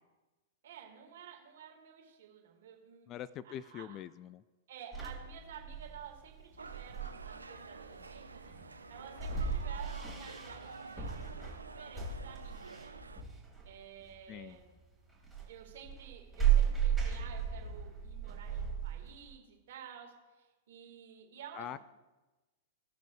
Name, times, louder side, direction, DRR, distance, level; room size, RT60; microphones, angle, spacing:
voice 1, 0.6-3.1 3.4-4.0 4.7-8.5 8.9-12.9 13.6-14.7 15.4-21.8, right 8 dB, 60° right, 2 dB, 1.9 m, -52 dB
voice 2, 3.1-4.4 14.3-14.6 21.5-21.8, left 11 dB, 35° left, 18 dB, 0.3 m, -43 dB
sound 1, 4.9-19.3, right 8 dB, ahead, 2.5 m, -36 dB
sound 2, 6.6-13.2, right 4 dB, 85° right, 0.5 m, -49 dB
16.5 x 6.3 x 2.4 m, 1.1 s
figure-of-eight pair, 100°, 0 cm